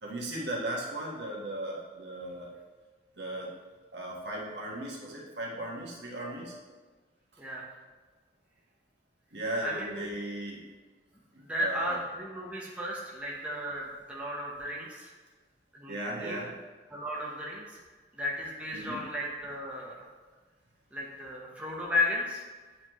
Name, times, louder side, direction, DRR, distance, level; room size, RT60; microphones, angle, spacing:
voice 1, 0.0-2.5 3.2-3.5 3.9-6.6 9.3-10.6 11.3-12.0 15.9-16.5 18.7-19.0 22.7-22.8, right 1 dB, 75° right, -3 dB, 1.4 m, -37 dB
voice 2, 9.6-10.1 11.1-15.1 15.7-16.4 16.9-17.8 18.1-20.1 20.9-22.4, left 1 dB, 5° right, -5 dB, 0.9 m, -34 dB
8.7 x 4.3 x 3.0 m, 1.3 s
head